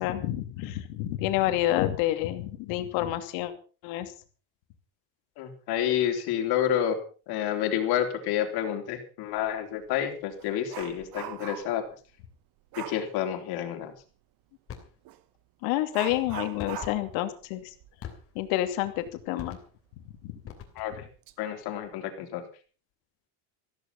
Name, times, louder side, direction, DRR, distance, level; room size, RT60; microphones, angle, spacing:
voice 1, 0.0-3.5 3.8-4.1 15.6-17.7 18.3-19.6 20.2-20.3, left 14 dB, 85° left, 8 dB, 2.8 m, -28 dB
voice 2, 5.4-7.0 7.3-11.8 12.8-13.9 20.8-21.1 21.4-22.4, left 10 dB, 55° left, 6 dB, 3.7 m, -29 dB
Dog, 9.4-9.5 9.9-11.9 12.7-13.1 15.0-15.2 15.9-19.2 19.5-19.6 20.2-20.3 20.9-21.3 21.7-21.9, right 13 dB, 45° right, 1.2 m, -42 dB
sound 1, 14.7-15.0 16.6-17.0 18.0-18.5 19.4-19.9 20.4-21.1, left 8 dB, 30° left, 3.0 m, -43 dB
15.0 x 14.5 x 5.5 m, 0.38 s
cardioid pair, 180°, 46 cm